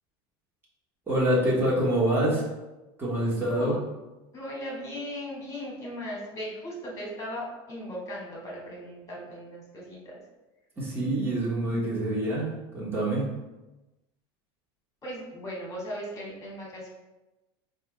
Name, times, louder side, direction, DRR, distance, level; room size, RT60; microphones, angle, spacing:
voice 1, 1.1-2.5 3.0-3.8 10.8-12.5 12.7-13.3, right 1 dB, 15° right, -6 dB, 1.2 m, -26 dB
voice 2, 4.3-10.2 15.0-16.9, equal, 25° left, -3 dB, 1.4 m, -38 dB
4.4 x 2.4 x 3.1 m, 1.1 s
supercardioid pair, 125°, 13 cm